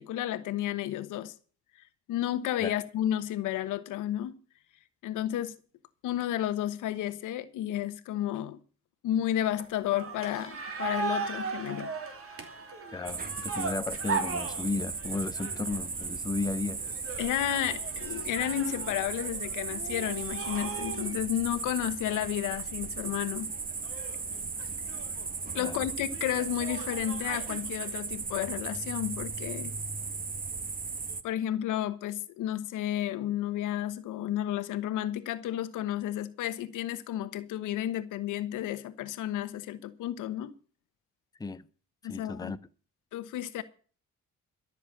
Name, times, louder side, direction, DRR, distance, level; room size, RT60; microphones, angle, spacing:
voice 1, 0.0-1.3 2.1-4.4 5.0-5.5 6.0-8.6 9.0-11.9 17.2-23.5 25.5-29.7 31.2-40.5 42.0-42.5 43.1-43.6, left 12 dB, 90° left, 1.2 m, -32 dB
sound 1, 9.6-16.1 16.8-21.3 21.8-21.9 22.2-22.3 23.0-23.3 23.7-25.3 26.1-28.0, right 4 dB, 50° right, 3.0 m, -38 dB
voice 2, 12.9-16.8 25.6-25.8 41.4-41.6 42.0-42.6, left 3 dB, 15° left, 0.6 m, -34 dB
sound 2, 13.1-31.2, right 4 dB, 30° right, 1.1 m, -36 dB
13.0 x 6.9 x 8.6 m
cardioid pair, 90°, 30 cm